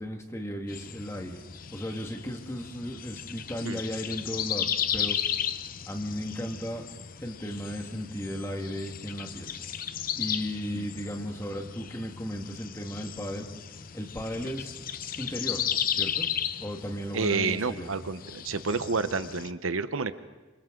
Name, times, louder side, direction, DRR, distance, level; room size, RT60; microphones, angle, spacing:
voice 1, 0.0-1.4 1.7-5.2 5.9-6.9 7.2-9.5 10.2-13.5 13.9-14.8 15.2-16.3 16.6-17.9, equal, 15° left, 3 dB, 1.7 m, -35 dB
sound 1, 0.7-19.5, left 9 dB, 45° left, 0.6 m, -35 dB
voice 2, 17.1-20.1, right 4 dB, 85° right, 12 dB, 0.9 m, -29 dB
29.5 x 26.0 x 3.8 m, 1.2 s
head